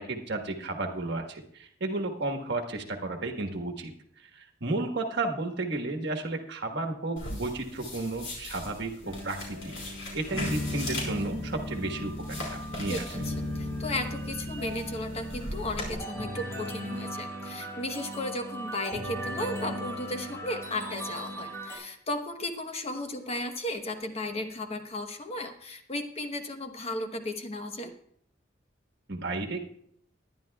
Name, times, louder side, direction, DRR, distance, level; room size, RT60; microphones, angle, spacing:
voice 1, 0.0-3.9 4.2-9.7 10.1-13.0 29.1-29.6, right 2 dB, 65° right, 4 dB, 1.4 m, -33 dB
sound 1, 7.2-15.9, left 1 dB, 90° left, 4.6 m, -40 dB
sound 2, 9.1-21.8, equal, 15° left, 4.8 m, -37 dB
voice 2, 12.9-27.9, left 1 dB, 35° left, 6 dB, 1.0 m, -35 dB
19.5 x 11.0 x 2.3 m, 0.67 s
head